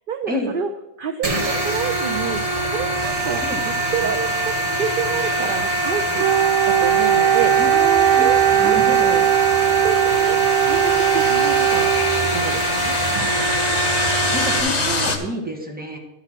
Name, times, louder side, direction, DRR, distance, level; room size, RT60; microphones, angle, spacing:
voice 1, 0.1-0.7 1.0-6.3 6.7-7.5 8.2-9.0 9.8-11.9 12.3-13.0, right 6 dB, 55° right, 7 dB, 0.6 m, -28 dB
sound 1, 1.2-14.6, right 2 dB, 30° right, 1.3 m, -24 dB
sound 2, 1.3-15.2, left 3 dB, 35° left, 1.0 m, -28 dB
Wind instrument woodwind instrument, 6.2-12.6, right 11 dB, 85° right, 1.0 m, -18 dB
voice 2, 7.6-8.3 8.6-9.3 14.3-16.0, equal, 5° right, 0 dB, 1.4 m, -28 dB
11.5 x 4.9 x 6.0 m, 0.90 s
omnidirectional pair, 1.3 m